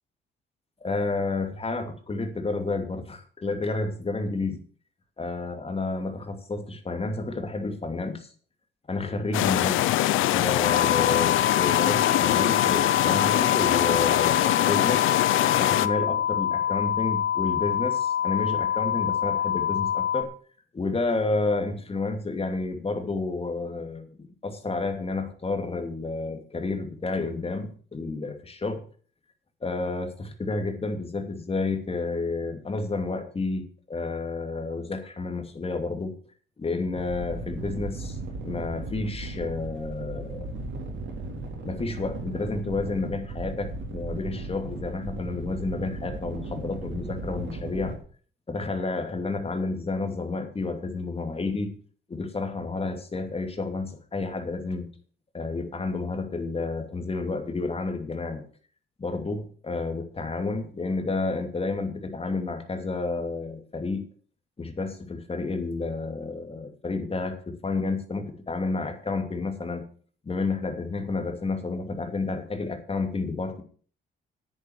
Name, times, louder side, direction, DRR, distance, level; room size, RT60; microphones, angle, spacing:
voice 1, 0.8-4.6 5.2-8.3 8.9-9.9 10.3-15.1 15.6-20.3 20.7-28.9 29.6-36.1 36.6-38.2 38.4-40.5 41.6-48.0 48.5-51.7 52.1-54.9 55.3-58.4 59.0-64.1 64.6-69.8 70.2-73.6, left 3 dB, 30° left, 6 dB, 2.7 m, -30 dB
sound 1, 9.3-15.9, left 15 dB, 90° left, 0.7 m, -23 dB
sound 2, 10.6-20.2, left 9 dB, 50° left, 1.7 m, -26 dB
sound 3, 36.9-48.0, right 2 dB, 70° right, 3.8 m, -36 dB
9.8 x 9.3 x 6.4 m, 0.43 s
cardioid pair, 90°, 20 cm